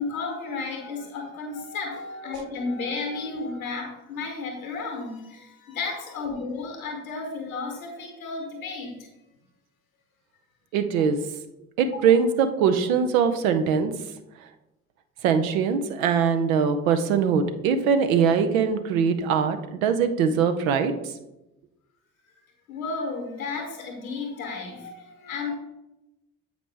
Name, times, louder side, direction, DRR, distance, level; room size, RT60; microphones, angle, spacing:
voice 1, 0.0-9.1 11.0-11.1 12.0-12.2 22.7-25.5, left 4 dB, 80° left, 2 dB, 1.2 m, -33 dB
voice 2, 10.7-11.2 11.8-13.9 15.2-21.1, right 6 dB, 75° right, 8 dB, 0.7 m, -22 dB
7.9 x 4.9 x 3.4 m, 0.93 s
figure-of-eight pair, 40°, 41 cm